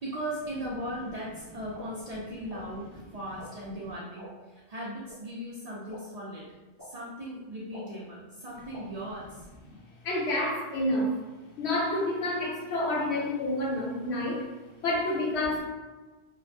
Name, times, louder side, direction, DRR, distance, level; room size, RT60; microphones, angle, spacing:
voice 1, 0.0-6.5 6.8-9.5, right 1 dB, 55° right, -6 dB, 0.4 m, -38 dB
sound 1, 1.7-1.8 2.5-2.6 3.4-3.5 4.2-4.3 5.1-5.2 5.9-6.0 6.8-6.9 7.7-7.8 8.7-8.8, left 1 dB, 25° left, 0.5 m, -46 dB
voice 2, 10.0-11.2 11.6-14.4 14.8-15.6, left 1 dB, 85° left, -3 dB, 1.0 m, -28 dB
2.8 x 2.1 x 2.6 m, 1.2 s
omnidirectional pair, 1.1 m